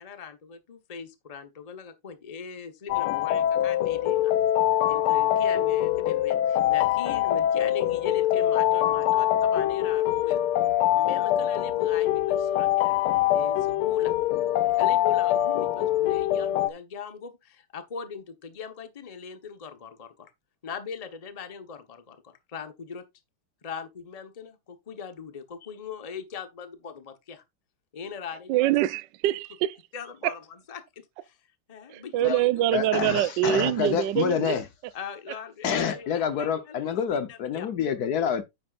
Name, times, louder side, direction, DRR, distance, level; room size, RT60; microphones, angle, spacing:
voice 1, 0.0-4.3 4.9-10.4 10.9-13.0 13.3-14.1 14.7-20.3 20.6-23.0 23.6-27.4 27.9-28.7 29.9-30.4 30.7-30.8 31.2-31.4 31.7-32.5 33.8-33.9 34.9-37.7, left 6 dB, 30° left, 0.7 m, -40 dB
sound 1, 2.9-16.7, left 12 dB, 80° left, 1.5 m, -24 dB
voice 2, 28.5-29.8 30.2-30.3 31.9-34.6 35.3-35.4, right 13 dB, 75° right, 1.1 m, -25 dB
voice 3, 32.7-34.6 35.6-38.4, left 7 dB, 55° left, 1.2 m, -27 dB
9.5 x 8.7 x 2.5 m
omnidirectional pair, 2.4 m